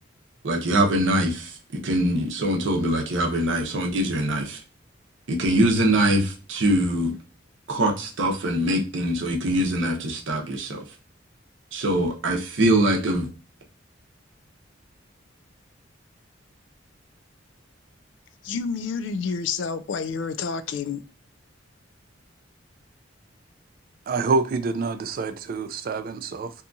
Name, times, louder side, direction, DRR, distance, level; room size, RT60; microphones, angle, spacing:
voice 1, 0.4-4.6 5.3-7.1 7.7-10.8 11.7-13.3, right 1 dB, 70° right, 0.7 m, -23 dB
voice 2, 18.4-21.0, left 5 dB, 70° left, 0.3 m, -29 dB
voice 3, 24.1-26.5, right 4 dB, 45° right, 0.3 m, -26 dB
2.8 x 2.3 x 2.5 m
head